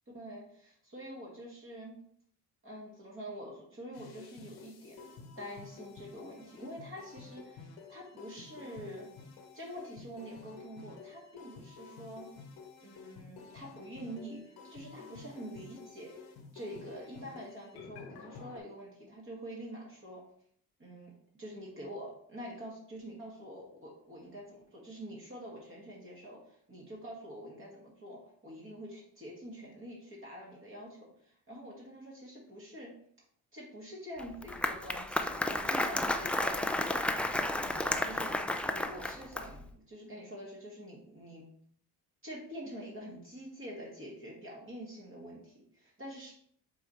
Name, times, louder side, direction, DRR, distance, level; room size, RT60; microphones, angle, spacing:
voice 1, 0.1-2.0 2.6-5.0 5.4-9.1 9.5-12.3 12.8-20.2 20.8-32.9 33.5-41.5 42.2-46.3, equal, 35° right, -4 dB, 2.1 m, -46 dB
sound 1, 3.9-18.6, left 5 dB, 90° left, 1.2 m, -51 dB
Applause, 34.2-39.7, left 1 dB, 5° left, 0.4 m, -32 dB
6.9 x 4.2 x 3.2 m, 0.63 s
cardioid pair, 95°, 37 cm